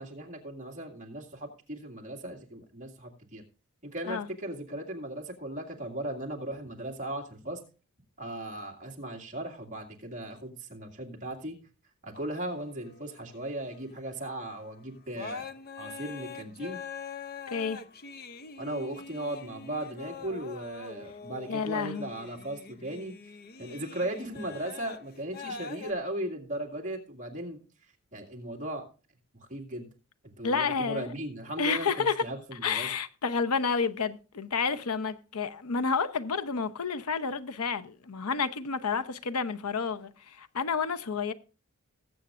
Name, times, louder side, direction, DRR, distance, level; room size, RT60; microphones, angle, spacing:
voice 1, 0.0-3.4 3.8-7.6 8.2-11.6 12.0-15.5 15.8-16.8 18.6-23.1 23.6-27.6 28.1-28.8 29.5-29.9 30.2-32.9, right 1 dB, 35° right, 2.2 m, -37 dB
sound 1, 12.1-13.7 14.6-14.7 15.1-25.9, left 5 dB, 45° left, 0.6 m, -44 dB
voice 2, 17.5-17.8 21.5-22.1 30.4-31.1 31.6-32.2 32.6-41.3, left 5 dB, 85° left, 0.8 m, -30 dB
19.5 x 7.9 x 2.5 m
head